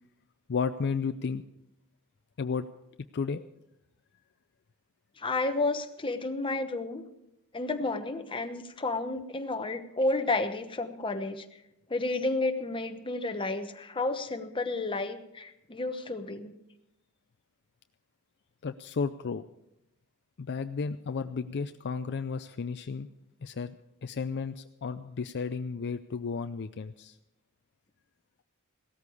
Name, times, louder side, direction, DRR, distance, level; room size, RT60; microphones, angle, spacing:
voice 1, 0.5-1.4 2.4-2.7 3.1-3.4 18.6-19.5 20.4-23.1 23.4-23.8 24.0-27.2, left 5 dB, 50° left, 10 dB, 0.5 m, -33 dB
voice 2, 5.2-7.0 7.5-11.4 11.9-16.5, left 2 dB, 25° left, 7 dB, 1.0 m, -31 dB
16.5 x 13.5 x 4.8 m, 0.84 s
head